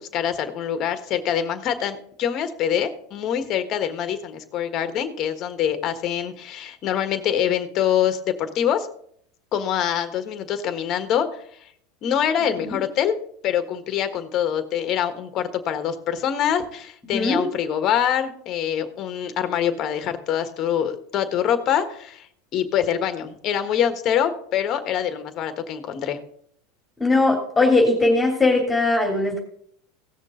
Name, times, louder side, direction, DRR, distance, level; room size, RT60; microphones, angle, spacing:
voice 1, 0.0-8.9 9.5-11.7 12.0-13.1 13.4-26.2, left 9 dB, 45° left, 10 dB, 1.5 m, -25 dB
voice 2, 17.1-17.4 27.0-29.4, left 2 dB, 15° left, 1 dB, 3.1 m, -19 dB
17.5 x 6.7 x 3.8 m, 0.64 s
hypercardioid pair, 85°, 0 cm